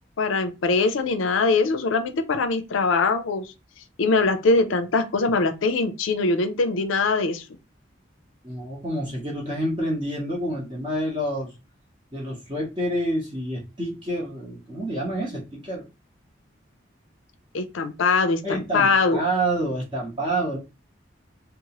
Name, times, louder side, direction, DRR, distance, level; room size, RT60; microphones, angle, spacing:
voice 1, 0.2-3.5 4.0-7.5 17.5-19.2, left 3 dB, 90° left, 0.5 m, -22 dB
voice 2, 8.4-11.5 12.1-15.8 18.4-20.6, right 1 dB, 25° right, 0.8 m, -28 dB
3.0 x 2.0 x 2.8 m
head